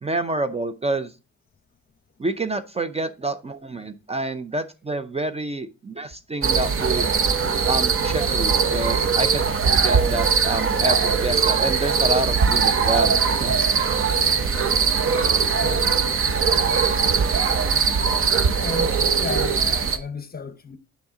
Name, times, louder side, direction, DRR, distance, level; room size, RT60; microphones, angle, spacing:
voice 1, 0.0-1.1 2.2-7.2 7.7-13.6, right 2 dB, 20° right, 0.6 m, -28 dB
sound 1, 6.4-20.0, right 5 dB, 45° right, 0.9 m, -21 dB
voice 2, 14.1-14.9 15.3-15.9 18.5-20.8, left 5 dB, 30° left, 0.9 m, -35 dB
7.0 x 5.8 x 3.7 m
cardioid pair, 90°, 30 cm